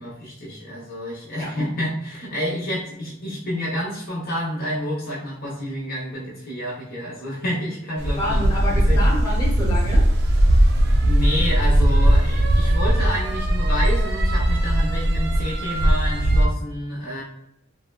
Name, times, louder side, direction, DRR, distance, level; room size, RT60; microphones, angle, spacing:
voice 1, 0.0-9.0 11.0-17.2, equal, 45° left, -5 dB, 0.7 m, -29 dB
sound 1, 8.0-16.5, right 1 dB, 55° right, 0.4 m, -19 dB
voice 2, 8.2-10.1, left 1 dB, 20° left, -5 dB, 0.9 m, -28 dB
3.4 x 2.2 x 2.2 m, 0.79 s
head